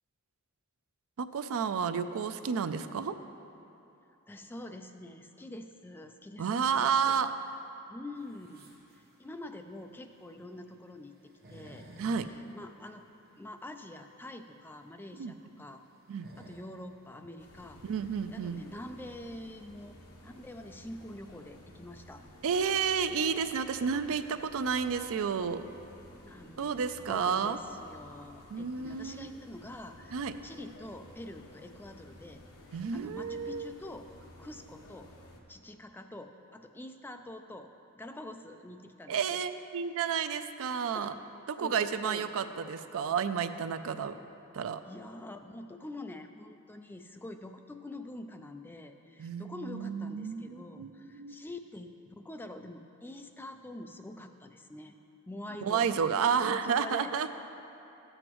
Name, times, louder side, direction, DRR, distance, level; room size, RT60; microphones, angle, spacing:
voice 1, 1.2-3.1 6.4-7.3 12.0-12.3 15.2-15.3 16.1-16.3 17.8-18.6 22.4-25.7 26.6-27.6 28.5-29.3 30.1-30.3 32.7-33.7 39.1-41.1 41.5-44.2 44.5-44.8 49.2-51.4 55.6-57.3, right 6 dB, 65° right, 11 dB, 0.4 m, -31 dB
voice 2, 4.3-7.2 7.9-11.9 12.3-13.0 13.4-15.8 16.4-17.8 18.3-19.9 20.2-22.2 26.2-32.4 32.7-34.1 34.4-35.1 35.5-39.4 40.9-41.1 41.6-42.3 44.9-55.0 55.3-56.0 56.4-57.3, left 1 dB, 10° left, 6 dB, 0.3 m, -46 dB
sound 1, 8.1-19.0, right 1 dB, 45° right, 1.2 m, -56 dB
sound 2, 17.4-35.4, left 1 dB, 75° left, 1.0 m, -54 dB
13.0 x 7.9 x 3.0 m, 2.8 s
head